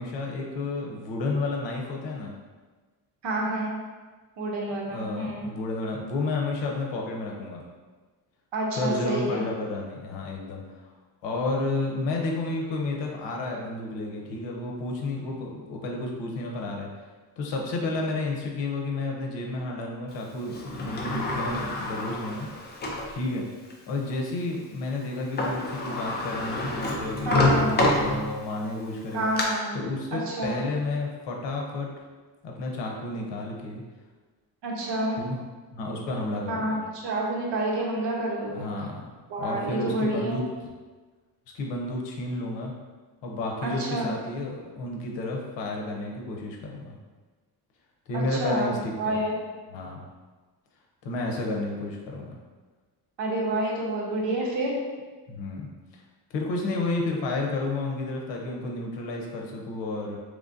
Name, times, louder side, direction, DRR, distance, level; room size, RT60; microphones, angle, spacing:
voice 1, 0.0-2.3 4.9-7.6 8.8-10.9 11.2-16.9 17.4-22.5 23.1-23.5 23.9-29.3 29.7-32.0 32.4-33.8 35.2-35.4 35.7-36.8 38.5-39.0 39.4-40.7 41.5-42.7 43.2-47.0 48.1-49.2 49.7-50.0 51.0-52.4 55.3-55.7 55.9-56.0 56.3-60.2, left 2 dB, 85° left, 0 dB, 0.8 m, -31 dB
voice 2, 3.2-3.8 4.4-5.5 8.5-9.5 27.3-27.7 29.1-29.7 30.1-30.6 34.6-35.2 36.5-38.7 39.3-40.4 43.6-44.2 48.1-49.4 53.2-54.8, right 1 dB, 75° right, -2 dB, 1.0 m, -28 dB
Sliding door, 20.5-23.1 23.7-23.8 25.1-25.2 25.4-28.6 29.0-29.4, left 2 dB, 25° left, 0.4 m, -27 dB
3.7 x 3.1 x 2.6 m, 1.3 s
cardioid pair, 170°, 42 cm